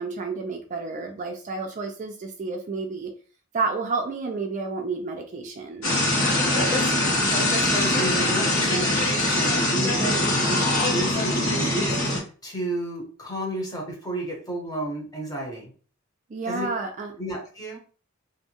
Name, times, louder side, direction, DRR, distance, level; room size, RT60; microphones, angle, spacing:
voice 1, 0.0-3.1 3.5-5.9 10.0-10.3 16.3-17.1, right 4 dB, 35° right, 3 dB, 0.3 m, -30 dB
sound 1, 5.8-12.2, left 1 dB, 85° left, 1.1 m, -23 dB
voice 2, 6.2-6.9 7.2-10.6 10.9-15.7 16.5-16.7 17.2-17.8, right 1 dB, 20° left, -1 dB, 0.8 m, -32 dB
2.6 x 2.2 x 2.8 m, 0.40 s
head